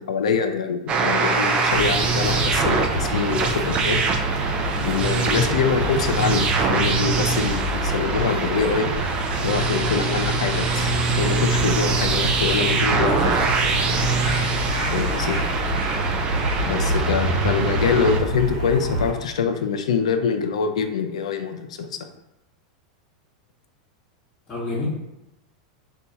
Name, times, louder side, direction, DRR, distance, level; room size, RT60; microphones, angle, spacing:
voice 1, 0.0-4.0 4.7-8.9 9.4-13.5 14.9-15.4 16.6-22.0, left 6 dB, 80° left, 7 dB, 0.4 m, -24 dB
sound 1, 0.9-18.2, right 4 dB, 35° right, 0.5 m, -24 dB
sound 2, 1.7-19.1, right 1 dB, 80° right, 0.8 m, -27 dB
voice 2, 15.0-15.4 24.5-24.9, left 2 dB, 25° left, -11 dB, 1.2 m, -30 dB
2.7 x 2.3 x 4.1 m, 0.91 s
hypercardioid pair, 110°, 3 cm